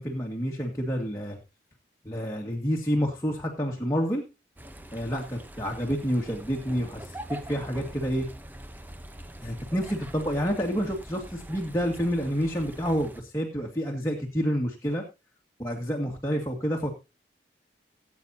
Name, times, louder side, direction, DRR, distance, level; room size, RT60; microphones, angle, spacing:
voice 1, 0.0-1.4 2.0-4.2 4.9-8.3 9.4-15.0 15.6-16.9, equal, 15° left, -1 dB, 2.0 m, -29 dB
sound 1, 4.6-13.2, right 1 dB, 10° right, 0.9 m, -43 dB
18.5 x 8.6 x 2.8 m, 0.27 s
head